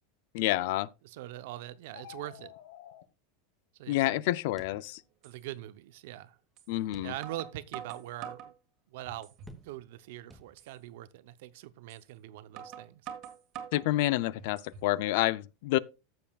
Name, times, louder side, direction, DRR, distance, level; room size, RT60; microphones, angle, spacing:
voice 1, 0.3-0.9 3.9-5.0 6.7-7.1 13.7-15.8, left 16 dB, 60° left, 0.4 m, -28 dB
voice 2, 1.0-2.5 3.7-4.3 5.2-6.4 7.0-8.5 8.9-9.3 9.6-13.1, right 14 dB, 65° right, 0.7 m, -43 dB
sound 1, 1.8-3.0, left 12 dB, 80° left, 1.1 m, -49 dB
sound 2, 4.6-5.4 5.8-5.9 6.9-7.6 8.1-8.2 9.5-10.0 10.3-11.0, right 2 dB, 5° right, 0.9 m, -54 dB
sound 3, 5.2-5.4 6.6-6.7 7.2-8.5 9.1-9.6 10.0-10.1 10.6-10.7 11.9-12.0 12.6-13.9 14.4-14.9, right 8 dB, 40° right, 1.6 m, -45 dB
15.5 x 7.0 x 2.3 m
supercardioid pair, 150°, 0 cm